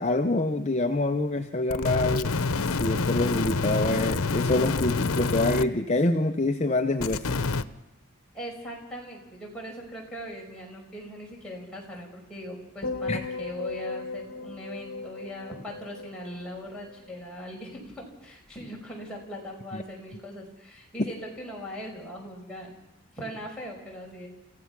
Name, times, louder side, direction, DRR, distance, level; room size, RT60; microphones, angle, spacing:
voice 1, 0.0-2.3 2.7-7.4 13.1-13.2 19.7-19.8, left 2 dB, 30° left, 6 dB, 0.7 m, -26 dB
sound 1, 1.7-5.6 7.0-7.6, left 4 dB, 90° left, 0.9 m, -27 dB
voice 2, 8.3-22.7 23.2-24.3, equal, 5° left, -3 dB, 5.3 m, -40 dB
sound 2, 12.8-17.2 17.5-17.9, left 3 dB, 65° left, 1.3 m, -37 dB
28.5 x 15.5 x 6.0 m, 0.97 s
head